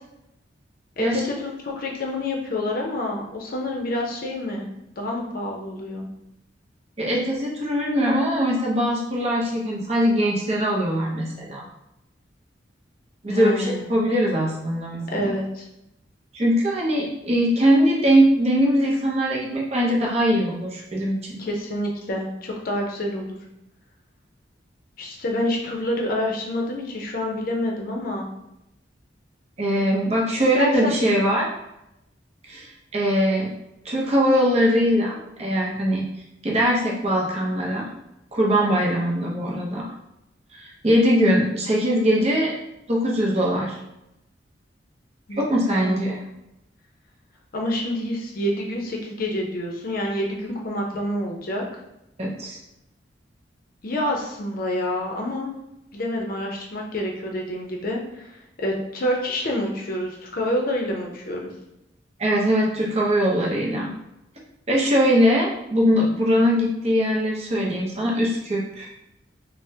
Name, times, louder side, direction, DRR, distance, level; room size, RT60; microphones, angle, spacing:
voice 1, 1.0-4.7 5.0-6.0 13.3-13.9 15.1-15.6 21.4-23.4 25.0-28.3 30.5-31.1 45.3-45.4 45.7-46.2 47.5-51.6 53.8-55.5 55.9-61.5, left 1 dB, 50° left, 0 dB, 0.5 m, -27 dB
voice 2, 7.0-11.7 13.2-15.3 16.3-21.4 29.6-31.5 32.5-33.5 33.8-36.0 36.4-37.9 38.3-39.9 40.5-42.5 42.9-43.8 45.3-46.2 52.2-52.6 62.2-63.9 64.7-68.9, equal, 35° right, -2 dB, 0.6 m, -21 dB
3.4 x 2.0 x 2.7 m, 0.86 s
head